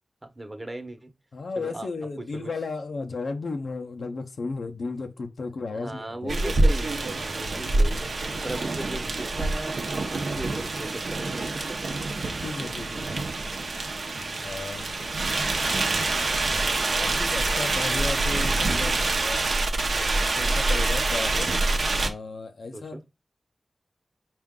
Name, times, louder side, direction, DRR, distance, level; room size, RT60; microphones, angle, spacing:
voice 1, 0.2-1.1 1.6-1.9 2.2-2.5 5.7-8.2 8.4-11.8 14.1-14.6 16.7-16.9 22.7-23.0, right 1 dB, 35° right, 0.9 m, -38 dB
voice 2, 1.3-6.3 12.4-13.1 14.4-14.9 16.9-19.5 19.9-21.5 22.0-23.1, left 3 dB, 80° left, 0.6 m, -34 dB
sound 1, 6.3-22.1, right 2 dB, 80° right, 0.7 m, -26 dB
4.5 x 2.5 x 3.6 m
cardioid pair, 40°, 0 cm